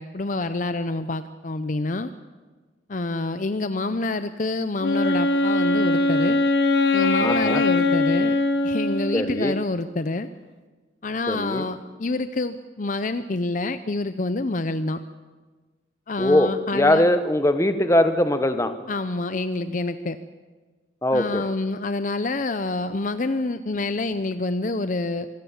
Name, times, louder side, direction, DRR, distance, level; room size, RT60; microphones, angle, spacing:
voice 1, 0.0-2.1 2.9-6.4 6.9-8.4 8.6-10.3 11.0-15.0 16.1-17.0 18.9-20.2 21.1-25.3, left 2 dB, 45° left, 11 dB, 0.6 m, -27 dB
Wind instrument woodwind instrument, 4.8-9.6, left 2 dB, 65° left, 1.2 m, -21 dB
voice 2, 7.2-7.6 9.1-9.6 11.3-11.7 16.2-18.7 21.0-21.4, left 1 dB, 15° left, 9 dB, 1.2 m, -21 dB
25.5 x 17.0 x 7.3 m, 1.3 s
head